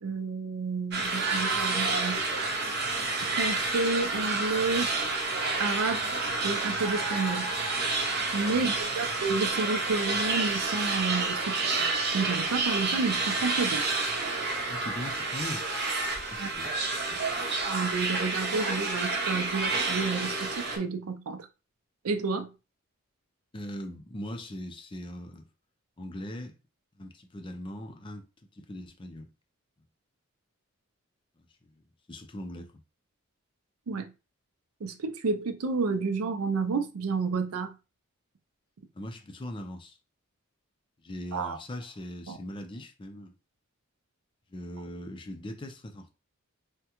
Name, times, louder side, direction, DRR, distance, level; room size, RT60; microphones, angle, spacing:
voice 1, 0.0-2.2 3.2-4.9 5.6-6.0 6.4-7.5 8.3-11.7 12.1-13.8 16.4-16.5 17.6-21.5 22.0-22.5 33.9-34.1 34.8-37.7 41.3-41.6 42.3-42.4, right 4 dB, 85° right, 0.5 m, -30 dB
sound 1, 0.9-20.8, right 3 dB, 50° right, 0.7 m, -29 dB
voice 2, 14.7-15.7 16.3-17.2 23.5-25.5 26.0-26.6 27.0-28.3 28.5-29.3 31.6-31.7 32.1-32.7 38.9-40.0 41.0-43.3 44.5-46.1, left 1 dB, 25° left, 0.4 m, -40 dB
3.5 x 2.1 x 2.9 m
head